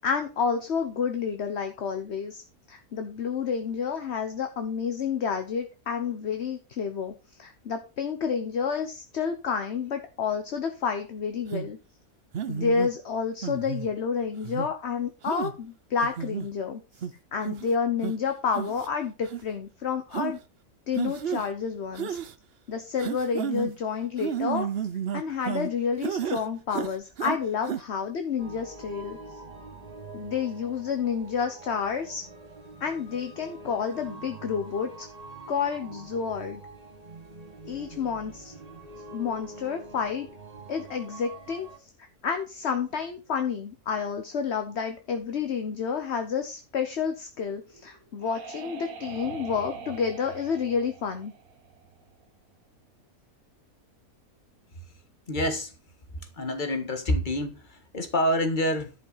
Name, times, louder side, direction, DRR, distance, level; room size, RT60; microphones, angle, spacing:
voice 1, 0.0-2.4 2.7-7.1 7.4-11.8 12.5-17.1 17.3-20.4 20.9-22.2 22.7-24.7 25.1-29.2 30.1-32.2 32.8-35.1 35.5-36.6 37.7-38.5 39.1-40.3 40.7-41.9 42.2-51.3, left 6 dB, 50° left, 1.2 m, -30 dB
sound 1, 11.5-11.7 12.3-12.9 13.4-13.9 14.4-14.7 15.3-15.5 16.0-16.5 17.0-17.1 17.5-17.7 18.0-18.1 18.5-18.9 19.3-19.4 20.1-20.3 21.0-21.5 22.0-22.3 23.0-23.7 24.2-25.7 26.0-26.4 26.7-27.4 27.6-27.8, right 8 dB, 50° right, 0.8 m, -31 dB
sound 2, 28.4-41.8, right 2 dB, 25° right, 2.8 m, -45 dB
sound 3, 47.7-52.2, right 6 dB, 70° right, 1.6 m, -42 dB
voice 2, 55.3-55.7 56.2-58.9, equal, 30° left, 1.7 m, -27 dB
11.0 x 5.7 x 5.6 m
omnidirectional pair, 1.6 m